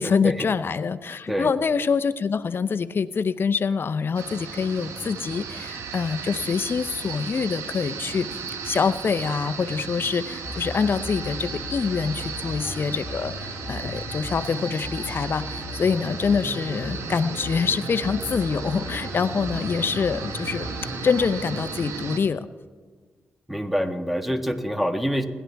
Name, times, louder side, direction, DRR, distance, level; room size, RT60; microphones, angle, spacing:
voice 1, 0.0-20.7 21.0-22.5, left 5 dB, 55° left, 13 dB, 0.6 m, -25 dB
sound 1, 4.1-22.2, right 5 dB, 85° right, 1.0 m, -35 dB
sound 2, 10.4-21.3, left 2 dB, 20° left, 3.0 m, -38 dB
voice 2, 23.5-25.2, equal, ahead, 6 dB, 1.5 m, -26 dB
29.5 x 11.0 x 3.5 m, 1.5 s
cardioid pair, 60°, 5 cm